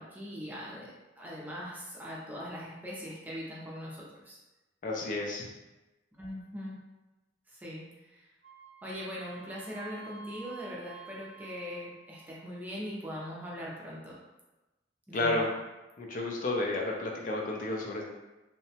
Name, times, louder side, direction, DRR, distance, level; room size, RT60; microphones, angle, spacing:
voice 1, 0.0-4.4 6.1-6.8 7.5-8.3 8.8-14.2 15.1-15.6, equal, 10° right, -5 dB, 0.5 m, -41 dB
voice 2, 4.8-5.5 15.1-15.5 16.0-18.0, left 2 dB, 45° left, -1 dB, 0.4 m, -31 dB
Wind instrument woodwind instrument, 8.4-12.3, right 6 dB, 75° right, 0.7 m, -51 dB
2.7 x 2.1 x 2.7 m, 1.1 s
head